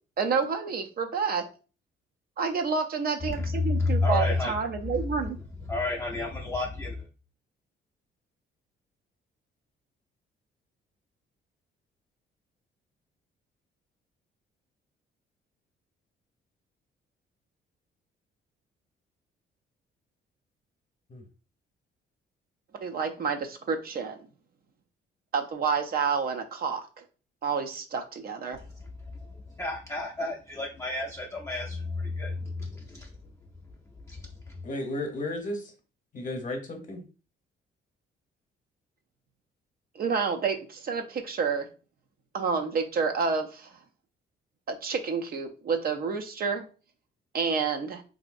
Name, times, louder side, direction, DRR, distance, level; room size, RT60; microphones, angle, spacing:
voice 1, 0.2-1.5 2.4-5.4 22.8-24.2 25.3-27.0 27.4-28.6 39.9-41.7 42.3-43.7 44.7-46.7 47.3-48.0, right 5 dB, 50° right, 5 dB, 0.5 m, -29 dB
voice 2, 3.3-4.6 4.9-5.0 5.7-7.1 28.6-33.1 34.1-34.6, left 3 dB, 15° left, -2 dB, 0.5 m, -31 dB
voice 3, 34.6-35.7 36.1-37.0, left 1 dB, 40° left, 4 dB, 0.9 m, -34 dB
3.0 x 2.7 x 2.5 m, 0.35 s
cardioid pair, 90°, 20 cm